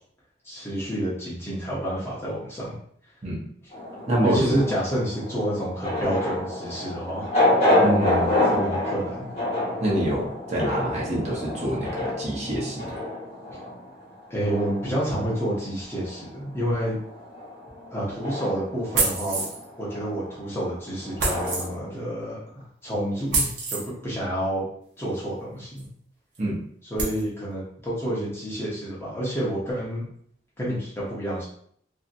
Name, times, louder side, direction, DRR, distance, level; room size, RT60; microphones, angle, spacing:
voice 1, 0.4-2.7 4.2-7.3 8.4-9.3 14.3-17.0 17.9-19.5 19.8-22.4 22.8-24.7 25.0-25.9 26.8-30.0 30.6-31.4, right 1 dB, 15° left, -7 dB, 0.8 m, -29 dB
sound 1, 3.7-16.3 16.6-21.9, left 1 dB, 35° left, 1.1 m, -28 dB
voice 2, 4.1-4.6 7.8-8.3 9.8-12.8 26.4-26.5, right 1 dB, 35° right, -4 dB, 0.8 m, -26 dB
sound 2, 18.9-19.6 21.2-21.7 23.3-23.9 25.8-25.9 26.4-26.5 27.0-27.2, right 3 dB, 65° right, 0.7 m, -26 dB
2.8 x 2.6 x 2.5 m, 0.64 s
head